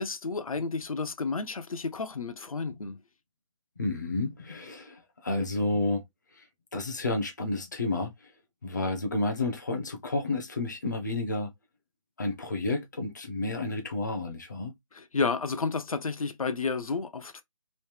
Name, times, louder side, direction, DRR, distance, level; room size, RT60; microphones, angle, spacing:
voice 1, 0.0-3.0 14.9-17.4, left 4 dB, 85° left, 0.7 m, -31 dB
voice 2, 3.8-6.0 6.3-6.4 6.7-8.3 8.6-11.5 12.2-14.7, left 2 dB, 35° left, 0.6 m, -31 dB
3.2 x 2.7 x 3.2 m
hypercardioid pair, 180°, 17 cm